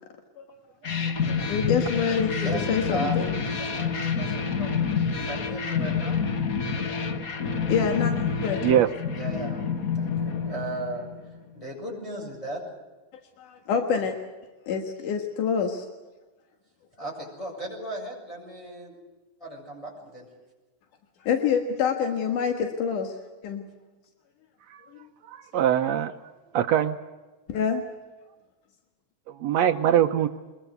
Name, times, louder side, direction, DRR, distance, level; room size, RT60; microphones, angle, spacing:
sound 1, 0.8-11.4, left 6 dB, 45° left, 1.2 m, -28 dB
voice 1, 1.0-3.4 7.7-8.1 8.4-8.6 13.4-14.1 14.7-15.8 21.2-23.1 23.4-23.7 27.5-27.8, left 6 dB, 85° left, 5 dB, 3.2 m, -26 dB
voice 2, 3.4-6.2 9.2-9.6 9.9-11.1 11.5-12.6 14.0-14.1 17.0-18.9 19.4-20.3, right 2 dB, 10° left, -4 dB, 7.2 m, -36 dB
voice 3, 25.2-26.1 26.5-27.0 29.3-30.3, right 10 dB, 70° right, 8 dB, 1.9 m, -23 dB
23.0 x 21.5 x 8.2 m, 1.2 s
omnidirectional pair, 3.5 m